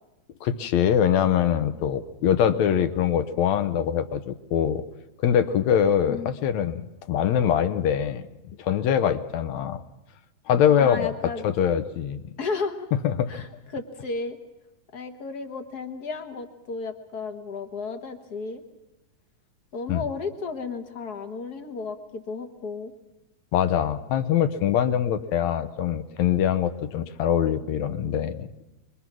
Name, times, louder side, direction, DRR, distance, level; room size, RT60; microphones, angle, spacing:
voice 1, 0.4-4.8 5.2-8.3 8.6-9.8 10.5-12.2 13.0-13.5 19.9-20.0 23.5-28.5, left 9 dB, 70° left, 12 dB, 2.1 m, -23 dB
voice 2, 10.8-11.4 12.4-12.9 13.3-13.5 13.7-14.4 14.9-18.6 19.7-22.9, left 4 dB, 40° left, 7 dB, 1.6 m, -33 dB
26.0 x 22.5 x 6.2 m, 1.0 s
omnidirectional pair, 3.5 m